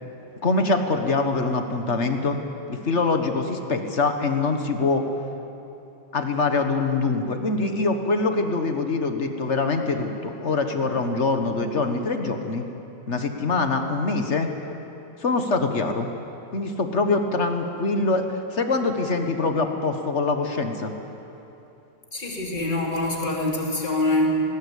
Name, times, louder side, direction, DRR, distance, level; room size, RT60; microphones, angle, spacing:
voice 1, 0.4-2.4 2.7-5.0 6.1-12.6 13.1-14.5 15.2-16.1 16.5-20.9, left 3 dB, 40° left, 6 dB, 1.4 m, -24 dB
voice 2, 22.1-24.3, left 2 dB, 25° left, -2 dB, 3.0 m, -25 dB
19.5 x 18.0 x 8.3 m, 2.9 s
omnidirectional pair, 2.1 m